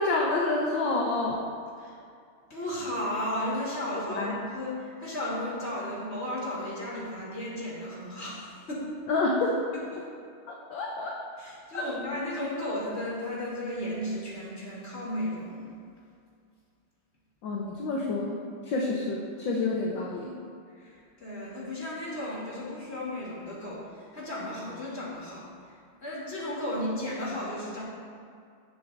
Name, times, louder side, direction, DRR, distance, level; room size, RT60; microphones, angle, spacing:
voice 1, 0.0-1.4 4.2-4.4 9.1-9.6 10.5-11.2 11.7-11.9 17.4-20.3, left 2 dB, 65° left, -2 dB, 1.6 m, -28 dB
voice 2, 2.5-8.9 9.7-10.0 11.4-15.7 20.8-27.8, left 1 dB, 30° left, -6 dB, 3.1 m, -34 dB
18.5 x 7.6 x 2.6 m, 2.3 s
omnidirectional pair, 2.4 m